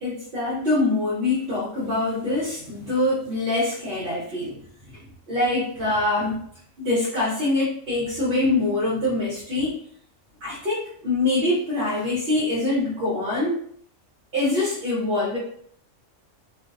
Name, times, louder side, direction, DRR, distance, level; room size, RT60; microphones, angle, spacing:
voice 1, 0.0-4.6 4.9-5.0 5.3-6.4 6.8-9.7 10.4-13.6 14.3-15.4, left 2 dB, 55° right, -7 dB, 0.8 m, -24 dB
2.5 x 2.0 x 2.4 m, 0.63 s
omnidirectional pair, 1.3 m